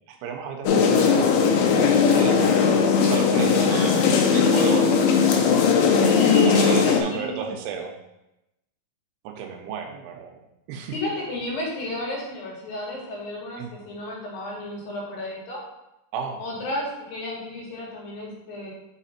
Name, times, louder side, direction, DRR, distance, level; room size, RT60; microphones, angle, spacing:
voice 1, 0.1-1.4 2.0-2.6 3.0-4.9 6.3-7.9 9.3-10.4 10.7-10.9 13.6-13.7 16.1-16.4, right 7 dB, 80° right, 4 dB, 2.6 m, -32 dB
sound 1, 0.7-7.0, left 6 dB, 80° left, 2.6 m, -18 dB
voice 2, 6.0-7.5 10.9-15.6 16.4-18.7, left 1 dB, 65° left, -3 dB, 3.0 m, -32 dB
5.6 x 4.9 x 4.2 m, 0.90 s
omnidirectional pair, 4.7 m